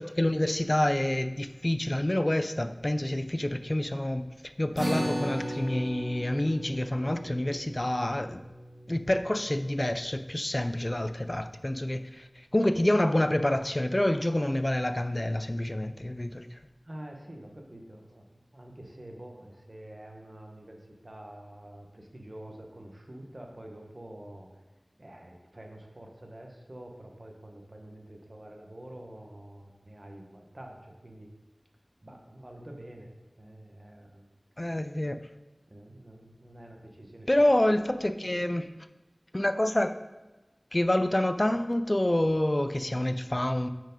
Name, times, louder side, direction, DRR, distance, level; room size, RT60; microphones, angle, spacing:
voice 1, 0.0-4.3 4.6-8.4 8.9-16.6 34.6-35.2 37.3-38.7 39.3-40.0 40.7-43.7, left 1 dB, 35° left, 10 dB, 0.4 m, -27 dB
sound 1, 4.8-11.4, equal, 90° right, 1.7 m, -37 dB
voice 2, 16.8-18.2 18.5-24.5 25.0-31.3 32.0-33.1 33.4-34.2 35.7-37.3, right 1 dB, 50° right, 2 dB, 1.0 m, -47 dB
6.1 x 4.5 x 5.1 m, 1.1 s
wide cardioid pair, 50°, 0 cm